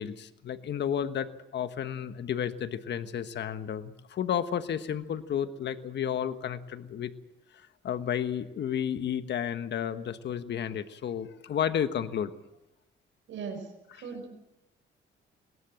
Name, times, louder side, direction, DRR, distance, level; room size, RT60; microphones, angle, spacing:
voice 1, 0.0-7.1 7.5-12.3 13.9-14.1, left 9 dB, 60° left, 10 dB, 1.3 m, -32 dB
voice 2, 13.3-13.7 13.9-14.3, right 5 dB, 70° right, 3 dB, 5.1 m, -38 dB
21.0 x 18.0 x 7.6 m, 0.94 s
cardioid pair, 90°, 20 cm